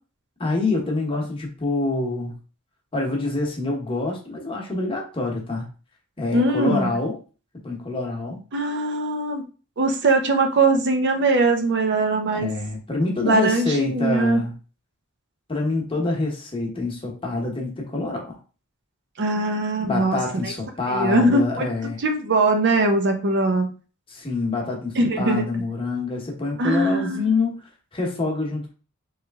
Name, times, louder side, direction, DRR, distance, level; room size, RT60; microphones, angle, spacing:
voice 1, 0.4-2.4 2.9-5.7 6.2-7.2 7.6-8.4 12.3-14.5 15.5-18.4 19.8-22.0 24.1-28.7, left 3 dB, 25° left, 0 dB, 1.0 m, -26 dB
voice 2, 6.3-6.9 8.5-9.4 9.8-12.5 13.3-14.4 19.2-20.5 20.9-21.7 22.0-23.7 25.0-25.4 26.6-27.3, right 2 dB, 55° right, 5 dB, 0.6 m, -21 dB
3.2 x 2.9 x 3.5 m, 0.36 s
head